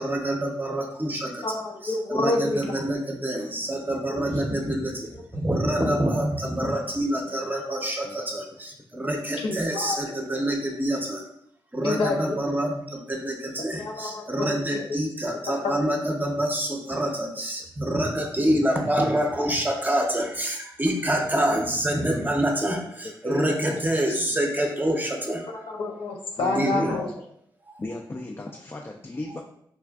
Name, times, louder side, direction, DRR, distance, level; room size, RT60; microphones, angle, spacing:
voice 1, 0.0-1.4 1.8-11.2 11.7-25.5 26.6-27.0, right 1 dB, 20° right, 2 dB, 0.7 m, -26 dB
voice 2, 1.4-2.8 4.1-4.2 9.4-10.2 11.8-12.4 13.6-14.5 14.7-14.8 15.4-15.7 21.3-21.4 25.5-27.1, left 2 dB, 75° left, 1 dB, 0.7 m, -28 dB
voice 3, 3.2-4.4 4.8-5.6 7.0-7.6 7.9-8.4 8.8-9.3 13.8-13.9 17.4-17.5 22.8-24.3 26.4-27.1 27.8-29.4, left 2 dB, 25° left, 0 dB, 0.4 m, -39 dB
4.2 x 2.4 x 2.3 m, 0.71 s
cardioid pair, 60°, 9 cm